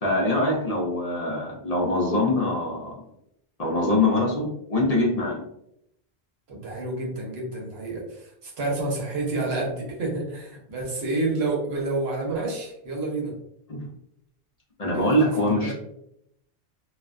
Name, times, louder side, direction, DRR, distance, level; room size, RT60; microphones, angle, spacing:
voice 1, 0.0-2.9 3.6-5.4 13.7-13.8 14.8-15.7, left 1 dB, 45° left, -4 dB, 0.6 m, -23 dB
voice 2, 6.5-13.3 14.9-15.7, right 2 dB, 80° right, -1 dB, 1.0 m, -29 dB
2.4 x 2.1 x 2.4 m, 0.78 s
omnidirectional pair, 1.0 m